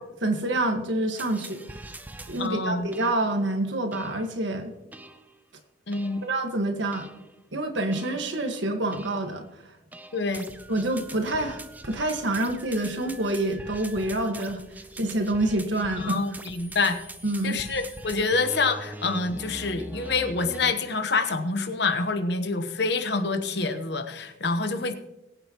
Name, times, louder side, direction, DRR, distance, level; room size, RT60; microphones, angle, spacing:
voice 1, 0.2-1.6 2.3-4.7 6.2-7.1 7.5-9.4 10.7-16.2 17.2-17.6, right 1 dB, 70° right, 6 dB, 1.6 m, -27 dB
sound 1, 1.2-2.5 2.9-3.4 3.9-4.3 4.9-5.3 5.9-6.4 6.9-7.4 7.9-8.3 8.9-9.3 9.9-20.7, right 1 dB, 10° right, 0.5 m, -43 dB
voice 2, 2.4-2.9 5.9-6.2 10.1-10.4 16.0-17.0 17.4-24.9, left 3 dB, 60° left, 8 dB, 1.0 m, -27 dB
21.0 x 8.9 x 3.0 m, 0.96 s
head